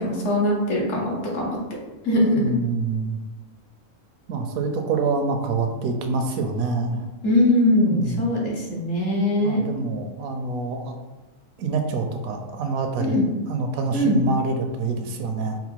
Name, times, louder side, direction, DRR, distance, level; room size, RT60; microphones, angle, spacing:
voice 1, 0.0-1.6 2.0-2.5 7.2-9.6 13.0-13.2 13.9-14.2, left 1 dB, 60° left, -3 dB, 1.2 m, -21 dB
voice 2, 2.3-3.2 4.3-7.0 7.9-8.2 9.1-11.0 11.6-13.2 13.5-15.6, right 3 dB, 75° right, 4 dB, 1.0 m, -26 dB
3.9 x 2.1 x 4.5 m, 1.1 s
omnidirectional pair, 1.5 m